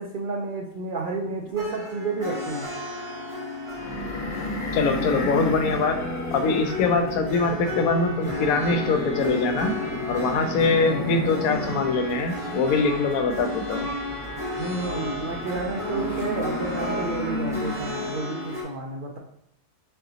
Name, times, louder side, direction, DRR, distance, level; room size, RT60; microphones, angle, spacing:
voice 1, 0.0-2.7 14.6-19.2, right 3 dB, 75° right, 0 dB, 0.4 m, -31 dB
sound 1, 1.5-18.6, left 2 dB, 25° right, 0.9 m, -33 dB
sound 2, 3.7-18.3, left 1 dB, 40° left, 0.9 m, -33 dB
voice 2, 4.7-6.0 6.3-9.7 10.1-13.9, left 4 dB, 80° left, 6 dB, 1.0 m, -23 dB
4.0 x 3.8 x 2.7 m, 0.78 s
omnidirectional pair, 1.5 m